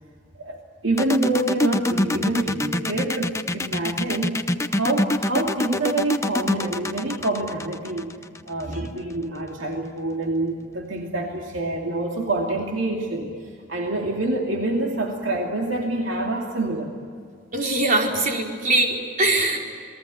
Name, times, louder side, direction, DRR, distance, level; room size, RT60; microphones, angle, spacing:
voice 1, 0.4-4.4 4.7-8.1 8.5-13.3 13.7-16.9, right 2 dB, 70° right, 1 dB, 2.7 m, -26 dB
sound 1, 1.0-8.7, left 1 dB, 15° left, 0.8 m, -25 dB
voice 2, 17.5-19.6, right 2 dB, 45° right, 0 dB, 4.8 m, -22 dB
29.0 x 21.0 x 9.0 m, 2.3 s
head